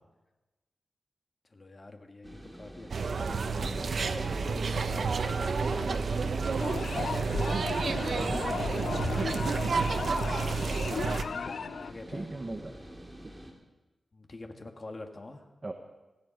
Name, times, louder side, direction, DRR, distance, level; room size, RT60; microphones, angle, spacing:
voice 1, 1.5-12.3 14.1-15.4, left 2 dB, 30° left, 4 dB, 1.5 m, -45 dB
sound 1, 2.2-13.5, right 1 dB, 10° right, 2.1 m, -47 dB
sound 2, 2.9-11.2, right 4 dB, 60° right, 0.8 m, -30 dB
voice 2, 3.7-4.1 7.8-8.3 12.1-12.7 15.6-15.7, right 2 dB, 25° right, 4 dB, 1.0 m, -40 dB
sound 3, 6.6-11.9, left 6 dB, 75° left, 0.5 m, -36 dB
18.5 x 15.0 x 5.1 m, 1.1 s
wide cardioid pair, 165°, 0 cm